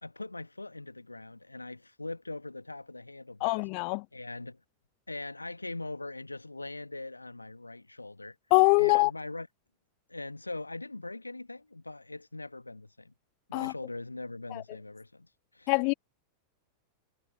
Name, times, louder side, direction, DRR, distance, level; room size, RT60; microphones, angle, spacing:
voice 1, 0.0-3.6 4.1-4.6 5.1-8.4 8.8-9.5 10.1-13.1 13.5-15.7, left 2 dB, 85° left, 1.9 m, -41 dB
voice 2, 3.4-4.0 8.5-9.1 13.5-13.7 14.5-14.6 15.7-15.9, left 40 dB or more, 45° left, 0.5 m, -24 dB
figure-of-eight pair, 90°, 0 cm